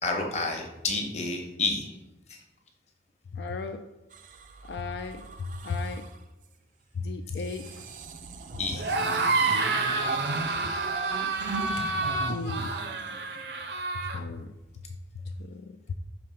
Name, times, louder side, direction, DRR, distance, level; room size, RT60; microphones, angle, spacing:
voice 1, 0.0-1.9 8.6-8.9, left 3 dB, 40° left, 2 dB, 0.9 m, -30 dB
voice 2, 3.3-3.9 4.7-5.3 5.6-6.1 6.9-7.9 9.0-9.6 10.3-10.7 11.2-11.3 11.8-11.9 12.2-12.8 14.0-14.5 15.4-15.9, left 4 dB, 75° left, 6 dB, 0.4 m, -36 dB
sound 1, 4.1-6.2 7.3-13.7 14.6-14.9, right 3 dB, 45° right, 0.4 m, -38 dB
sound 2, 8.8-14.2, right 3 dB, 75° right, 0.7 m, -29 dB
5.1 x 3.4 x 5.6 m, 1.0 s
head